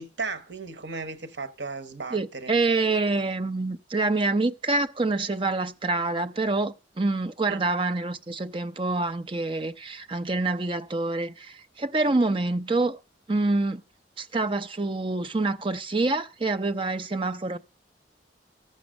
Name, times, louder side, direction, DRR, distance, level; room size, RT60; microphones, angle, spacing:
voice 1, 0.0-2.5 7.5-7.7, right 4 dB, 75° right, 1.0 m, -35 dB
voice 2, 2.1-13.0 13.3-13.8 14.2-17.6, right 2 dB, 30° right, 0.5 m, -26 dB
14.0 x 7.0 x 6.3 m
head